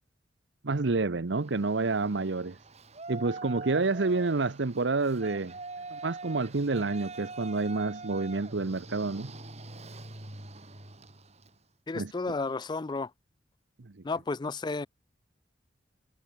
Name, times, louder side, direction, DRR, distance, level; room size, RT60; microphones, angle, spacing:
voice 1, 0.6-2.6 3.1-5.6 5.9-9.3 11.9-12.1 13.8-13.9, right 3 dB, 80° right, 0.9 m, -29 dB
Yell, 1.4-11.6, right 3 dB, 40° right, 4.1 m, -44 dB
voice 2, 11.9-13.1 14.0-14.9, left 3 dB, 25° left, 0.4 m, -32 dB
head